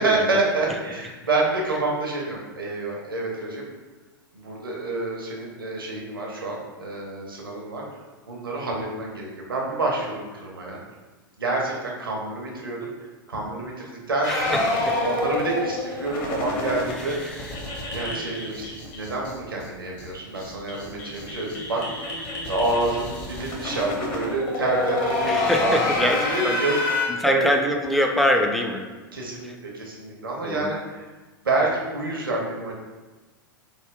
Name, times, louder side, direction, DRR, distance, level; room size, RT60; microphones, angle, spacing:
voice 1, 0.0-3.6 4.3-7.8 8.3-10.8 11.4-12.9 13.3-14.6 15.0-17.4 17.9-21.8 22.5-27.5 29.1-31.1 31.4-32.7, right 2 dB, 75° right, -2 dB, 0.6 m, -28 dB
sound 1, 14.2-19.3 19.6-19.7 20.0-20.1 20.3-27.0, left 2 dB, 40° left, 0.7 m, -28 dB
voice 2, 14.3-14.6 14.9-15.0 17.0-17.5 25.3-26.6 27.2-28.8 30.4-30.7, left 1 dB, ahead, 2 dB, 0.3 m, -24 dB
3.4 x 2.1 x 3.6 m, 1.3 s
figure-of-eight pair, 90°, 12 cm